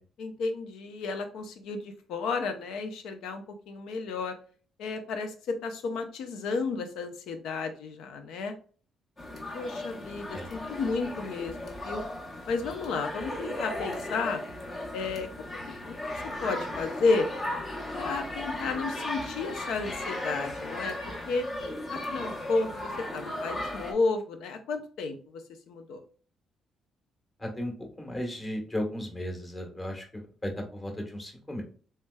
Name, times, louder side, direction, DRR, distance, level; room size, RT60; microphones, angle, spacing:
voice 1, 0.2-4.3 4.8-8.5 9.5-12.0 12.5-14.4 14.9-15.6 15.8-15.9 16.2-17.3 17.9-21.0 21.3-21.5 21.9-26.0, left 4 dB, 85° left, 7 dB, 0.6 m, -32 dB
sound 1, 9.2-23.9, left 1 dB, 35° left, 1.0 m, -36 dB
voice 2, 27.4-27.7 28.0-31.6, left 1 dB, 20° left, 1 dB, 1.2 m, -35 dB
3.2 x 3.2 x 2.2 m, 0.42 s
cardioid pair, 90°, 0 cm